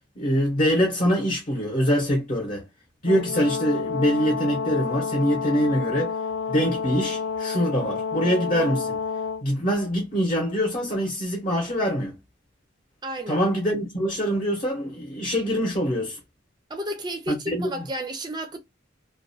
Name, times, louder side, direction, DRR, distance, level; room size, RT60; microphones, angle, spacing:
voice 1, 0.2-2.6 3.0-6.2 6.5-9.0 9.4-12.1 13.3-16.2 17.3-17.7, equal, 35° left, 0.8 m, -24 dB
Brass instrument, 3.1-9.4, left 6 dB, 75° left, 0.3 m, -29 dB
voice 2, 13.0-13.4 16.7-18.6, right 1 dB, 20° right, 0.4 m, -32 dB
2.4 x 2.2 x 2.6 m
head